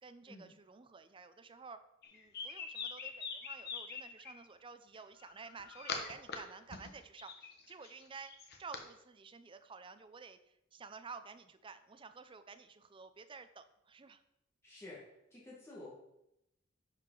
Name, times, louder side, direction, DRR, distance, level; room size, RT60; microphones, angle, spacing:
voice 1, 0.0-1.8 2.1-8.3 8.6-14.2, right 5 dB, 25° right, 10 dB, 0.5 m, -52 dB
sound 1, 2.0-4.3 5.2-6.4 6.7-8.8, left 5 dB, 55° left, 1.0 m, -43 dB
voice 2, 14.6-15.0 15.3-16.0, left 2 dB, 15° left, -7 dB, 1.6 m, -50 dB
10.5 x 4.9 x 3.8 m, 0.85 s
head